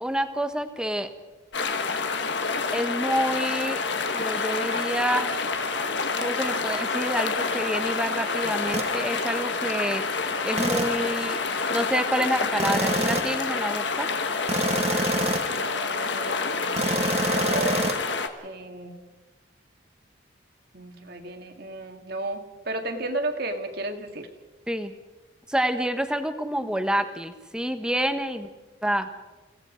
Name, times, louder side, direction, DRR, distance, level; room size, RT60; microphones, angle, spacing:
voice 1, 0.0-1.1 2.7-3.8 4.1-5.3 6.2-10.1 10.4-11.4 11.7-14.1 24.7-24.9 25.5-28.5 28.8-29.1, equal, 5° right, 8 dB, 1.2 m, -28 dB
sound 1, 1.5-18.3, left 4 dB, 60° left, 1.6 m, -28 dB
sound 2, 4.5-10.0, right 4 dB, 80° right, 1.2 m, -42 dB
sound 3, 8.7-9.0 10.6-11.1 12.6-13.4 14.5-15.6 16.8-18.0, right 2 dB, 30° right, 1.5 m, -26 dB
voice 2, 15.5-18.0 18.4-19.0 20.7-24.3, right 2 dB, 50° right, 6 dB, 2.1 m, -34 dB
30.0 x 17.5 x 5.1 m, 1.2 s
head